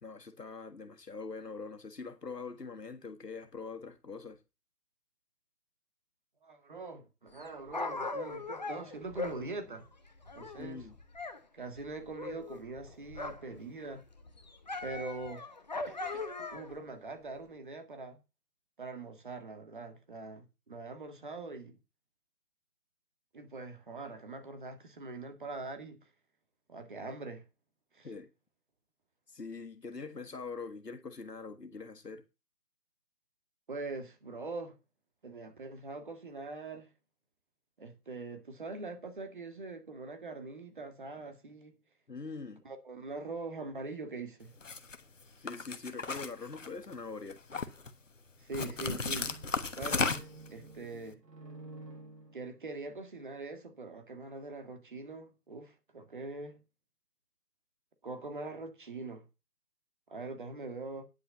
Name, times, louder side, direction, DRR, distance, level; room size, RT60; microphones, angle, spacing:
voice 1, 0.0-4.4 10.6-11.0 28.0-28.3 29.3-32.2 42.1-42.6 45.4-47.4, left 4 dB, 80° left, 1.8 m, -43 dB
voice 2, 6.4-9.8 10.4-10.9 11.5-14.0 14.8-15.4 15.9-16.2 16.5-18.2 18.8-21.8 23.3-26.0 26.7-27.4 27.9-28.1 33.7-34.8 35.2-36.9 37.8-41.8 42.6-44.5 48.4-49.3 49.8-50.1 50.5-51.2 52.3-56.6 58.0-59.2 60.1-61.0, right 3 dB, 30° right, 1.9 m, -43 dB
Dog, 7.3-11.4 11.6-13.6 13.9-16.8 17.4-17.5, left 3 dB, 25° left, 1.1 m, -40 dB
sound 1, 44.6-45.0 45.5-46.9 47.3-47.9 48.5-50.5, left 4 dB, 50° left, 1.4 m, -34 dB
sound 2, 48.7-52.9, right 2 dB, 85° right, 3.5 m, -50 dB
10.0 x 5.7 x 6.9 m
figure-of-eight pair, 160°, 48 cm